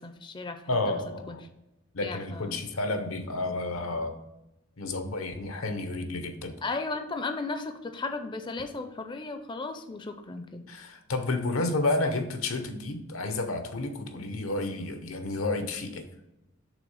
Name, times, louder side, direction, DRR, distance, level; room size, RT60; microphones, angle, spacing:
voice 1, 0.0-0.6 0.9-1.0 1.3-1.4 2.0-2.6 6.6-10.6, left 3 dB, 25° left, 7 dB, 0.4 m, -35 dB
voice 2, 0.7-1.4 1.9-4.1 4.8-6.5 10.7-16.0, left 2 dB, 85° left, 7 dB, 0.8 m, -31 dB
6.0 x 3.6 x 5.5 m, 0.93 s
head